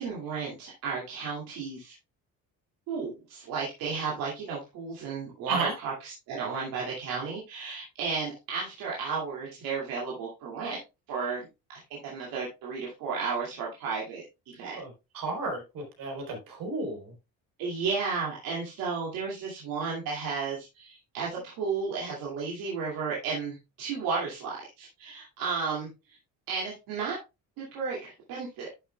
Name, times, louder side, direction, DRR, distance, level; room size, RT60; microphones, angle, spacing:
voice 1, 0.0-1.9 2.9-10.8 11.1-14.8 17.6-26.2 26.5-27.2 27.6-28.7, right 5 dB, 90° right, 2.4 m, -33 dB
voice 2, 15.1-17.1, right 3 dB, 75° right, 3.9 m, -33 dB
11.0 x 7.0 x 2.2 m
cardioid pair, 105°, 34 cm